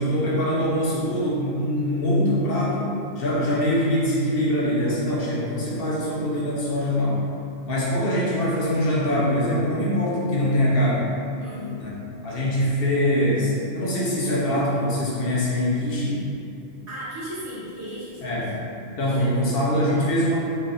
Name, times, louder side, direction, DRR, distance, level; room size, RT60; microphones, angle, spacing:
voice 1, 0.0-7.2 7.6-11.0 11.8-11.9 12.2-16.2 18.2-18.5 18.9-20.4, equal, 55° left, -6 dB, 1.1 m, -23 dB
voice 2, 11.4-11.8 16.9-18.4 19.1-19.5, equal, 70° right, -9 dB, 1.5 m, -36 dB
4.1 x 3.9 x 2.6 m, 2.6 s
omnidirectional pair, 1.2 m